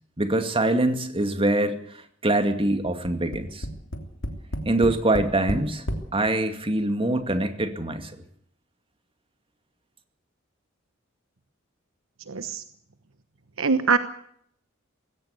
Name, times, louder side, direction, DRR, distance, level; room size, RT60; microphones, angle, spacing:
voice 1, 0.2-1.8 2.2-3.7 4.7-5.9 6.1-8.1, right 2 dB, 25° right, 8 dB, 2.3 m, -24 dB
Tap, 3.0-6.1 6.9-7.0 7.3-7.4, equal, 70° left, 3.3 m, -31 dB
voice 2, 12.3-12.6 13.6-14.0, right 5 dB, 85° right, 11 dB, 1.1 m, -22 dB
20.0 x 17.0 x 8.3 m, 0.66 s
head